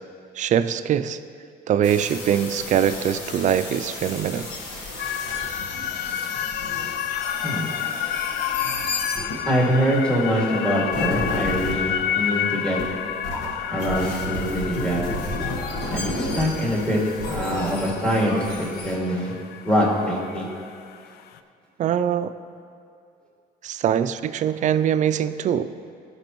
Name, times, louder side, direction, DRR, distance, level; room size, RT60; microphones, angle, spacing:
voice 1, 0.4-1.2 1.7-4.5 21.8-22.3 23.6-25.7, right 9 dB, 45° right, 13 dB, 0.4 m, -22 dB
sound 1, 1.8-9.5 10.9-11.8 12.8-12.9 13.2-18.9, left 2 dB, 90° left, 1.4 m, -32 dB
sound 2, 5.0-21.4, left 9 dB, 70° left, 0.4 m, -30 dB
voice 2, 9.5-12.8 13.7-15.0 15.9-18.5 18.8-19.3 19.6-20.5, equal, 5° left, -5 dB, 2.3 m, -23 dB
16.5 x 5.9 x 3.1 m, 2.5 s
cardioid pair, 110°, 17 cm